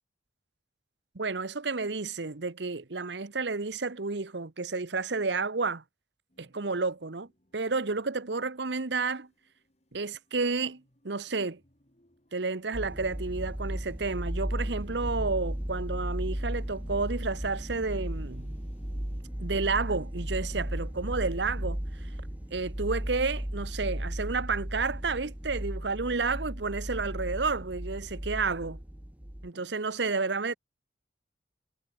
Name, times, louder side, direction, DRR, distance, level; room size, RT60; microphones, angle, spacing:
voice 1, 1.1-5.8 6.4-9.3 9.9-11.6 12.3-18.5 19.4-22.1 22.5-28.8 29.4-30.5, right 4 dB, 70° right, 1.1 m, -31 dB
sound 1, 6.3-22.5, equal, 40° left, 7.2 m, -63 dB
sound 2, 12.7-29.5, equal, 10° right, 0.7 m, -35 dB
head